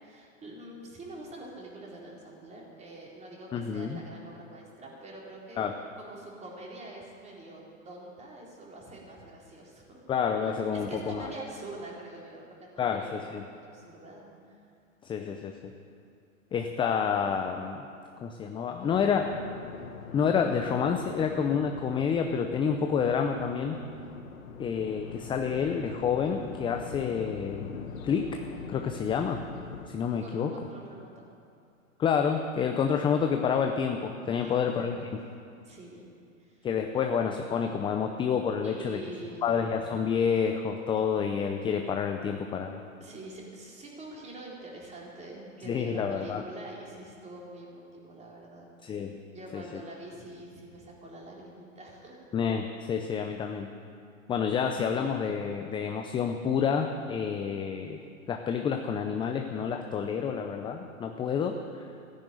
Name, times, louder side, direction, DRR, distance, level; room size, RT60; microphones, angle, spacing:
voice 1, 0.0-5.6 6.0-10.0 10.4-13.1 13.5-14.6 30.2-31.3 34.3-35.1 35.6-36.1 36.4-36.7 38.6-39.5 43.0-48.7 49.3-52.2, right 2 dB, 15° right, -3 dB, 3.9 m, -45 dB
voice 2, 3.5-4.0 5.6-5.8 10.1-11.3 12.8-13.4 15.0-15.7 16.5-17.8 18.2-19.3 20.1-23.8 24.6-28.4 28.7-29.4 29.9-30.5 32.0-35.1 36.6-39.0 39.4-42.8 45.7-46.4 48.8-49.1 49.5-49.8 52.3-53.7 54.3-58.0 58.3-61.9, left 6 dB, 10° left, 5 dB, 0.6 m, -29 dB
sound 1, 18.8-29.9, left 6 dB, 75° left, 1.7 m, -43 dB
15.0 x 10.5 x 9.3 m, 2.4 s
hypercardioid pair, 125°, 41 cm